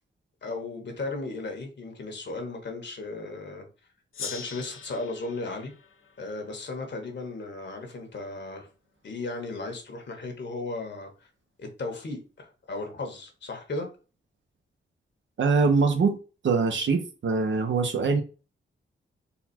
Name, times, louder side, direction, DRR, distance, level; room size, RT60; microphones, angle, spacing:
voice 1, 0.4-3.7 4.2-5.7 6.2-8.7 9.0-11.3 11.6-13.9, left 2 dB, 60° left, 1.4 m, -35 dB
Gong, 4.1-7.3, left 6 dB, 85° left, 0.8 m, -42 dB
voice 2, 15.4-16.2 16.4-18.2, right 4 dB, 70° right, 0.9 m, -23 dB
4.1 x 2.4 x 4.2 m
cardioid pair, 85°, 20 cm